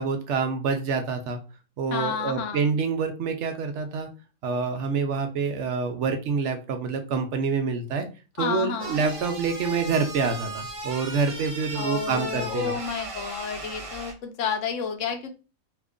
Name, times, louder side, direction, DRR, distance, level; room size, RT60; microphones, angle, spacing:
voice 1, 0.0-1.4 1.8-4.1 4.4-8.1 8.4-12.8, right 5 dB, 65° right, 6 dB, 0.8 m, -27 dB
voice 2, 1.9-2.7 8.4-9.1 11.7-15.3, left 6 dB, 70° left, 6 dB, 0.9 m, -30 dB
sound 1, 8.8-14.1, right 3 dB, 50° right, 0.4 m, -37 dB
2.9 x 2.4 x 3.5 m, 0.32 s
omnidirectional pair, 1.5 m